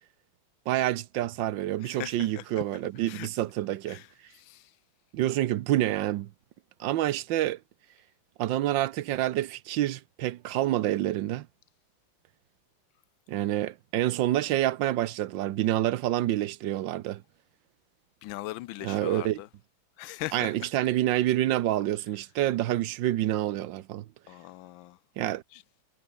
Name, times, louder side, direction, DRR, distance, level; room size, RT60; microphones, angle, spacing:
voice 1, 0.7-4.0 5.1-6.3 6.8-7.6 8.4-11.5 13.3-17.2 18.8-19.4 20.3-24.0 25.2-25.4, right 14 dB, 70° right, 1.4 m, -27 dB
voice 2, 1.8-2.6 3.1-3.3 3.9-4.1 4.3-4.7 18.2-19.5 20.0-20.7 24.3-25.0 25.5-25.6, left 16 dB, 75° left, 1.3 m, -39 dB
omnidirectional pair, 2.2 m